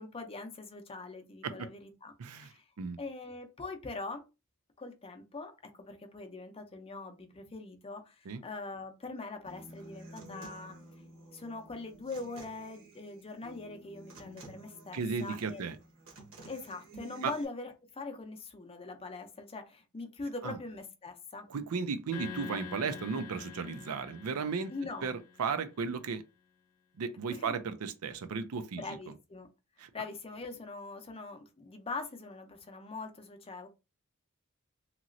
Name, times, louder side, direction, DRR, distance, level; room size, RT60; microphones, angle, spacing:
voice 1, 0.0-2.7 3.0-4.2 4.8-10.8 11.3-15.6 16.5-21.5 24.7-25.1 27.3-27.6 28.8-29.5 29.9-33.7, left 3 dB, 25° left, 0.5 m, -42 dB
voice 2, 2.2-2.5 2.8-3.0 8.3-8.4 14.9-15.8 17.2-17.3 20.4-20.6 21.5-24.7 25.0-26.2 27.0-29.1 29.8-29.9, right 5 dB, 80° right, 0.5 m, -35 dB
Human voice / Acoustic guitar, 9.5-17.4, right 2 dB, 65° right, 1.1 m, -52 dB
sound 1, 22.1-25.6, left 7 dB, 85° left, 0.7 m, -46 dB
2.9 x 2.9 x 2.6 m
head